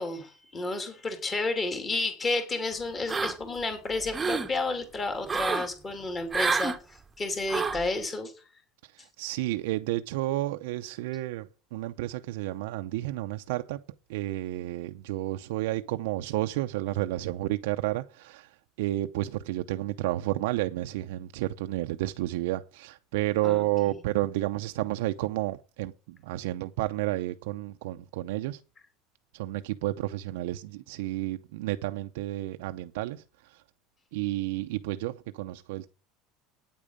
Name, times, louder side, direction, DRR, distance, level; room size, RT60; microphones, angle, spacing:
voice 1, 0.0-8.3 23.4-24.0, left 3 dB, 20° left, 3.1 m, -31 dB
sound 1, 3.1-3.6 4.0-4.5 5.3-5.7 6.3-6.8 7.5-7.9, right 4 dB, 15° right, 1.1 m, -28 dB
voice 2, 8.8-13.8 14.1-28.6 29.3-33.6 34.1-35.9, right 16 dB, 85° right, 0.6 m, -31 dB
9.5 x 8.7 x 6.6 m
supercardioid pair, 140°, 0 cm